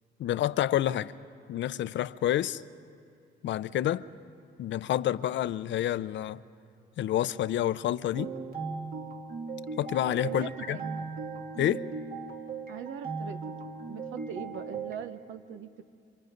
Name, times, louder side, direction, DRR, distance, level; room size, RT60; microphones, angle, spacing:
voice 1, 0.2-1.1 1.5-2.6 3.4-4.0 4.6-6.4 7.0-8.3 9.8-10.8 11.6-11.8, left 12 dB, 70° left, 15 dB, 0.6 m, -28 dB
sound 1, 8.1-14.9, right 4 dB, 45° right, 2.0 m, -38 dB
voice 2, 10.2-11.1 12.7-15.8, right 8 dB, 80° right, 10 dB, 1.0 m, -41 dB
27.0 x 26.0 x 5.3 m, 2.4 s
cardioid pair, 90°, 20 cm